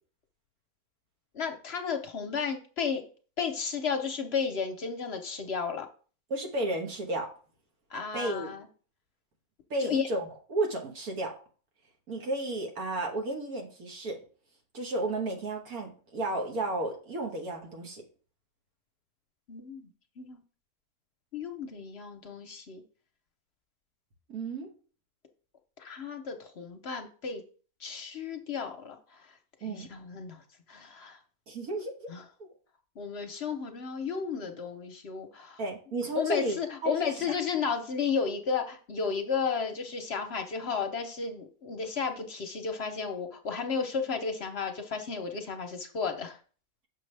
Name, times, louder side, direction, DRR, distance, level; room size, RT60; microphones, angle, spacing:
voice 1, 1.3-3.0 3.4-5.9 7.9-8.7 9.8-10.1 19.5-19.9 20.2-20.4 21.3-22.8 25.8-27.4 27.8-29.0 29.6-30.4 30.7-31.2 32.1-32.2 33.0-35.6 36.1-46.4, left 6 dB, 55° left, 6 dB, 0.9 m, -33 dB
voice 2, 6.3-7.3 8.1-8.6 9.7-11.3 12.1-14.2 14.7-18.0 24.3-24.7 29.6-29.9 31.5-32.1 32.4-32.5 35.6-36.6 36.8-37.3, right 2 dB, 80° right, 2 dB, 1.9 m, -33 dB
6.4 x 6.2 x 3.3 m, 0.40 s
omnidirectional pair, 1.5 m